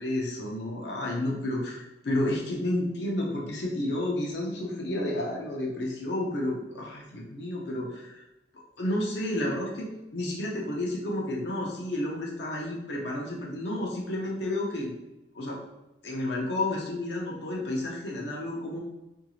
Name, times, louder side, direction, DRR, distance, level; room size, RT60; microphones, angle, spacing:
voice 1, 0.0-8.1 8.8-14.9 15.3-15.6 16.0-18.8, left 1 dB, 75° left, -2 dB, 0.7 m, -31 dB
2.6 x 2.4 x 3.0 m, 0.96 s
head